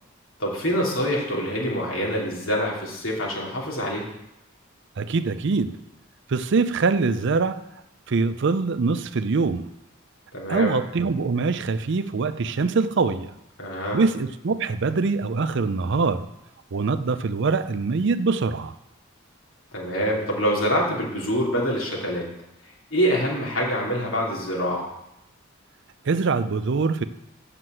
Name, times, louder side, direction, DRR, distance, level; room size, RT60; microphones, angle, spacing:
voice 1, 0.4-4.0 10.3-10.7 13.6-14.0 19.7-22.3 22.9-24.8, equal, 75° left, -3 dB, 3.1 m, -25 dB
voice 2, 5.0-5.8 6.3-7.6 8.1-9.7 10.5-13.3 13.9-16.3 16.7-18.7 26.0-27.1, right 4 dB, 60° right, 12 dB, 0.5 m, -23 dB
7.8 x 6.7 x 7.6 m, 0.85 s
head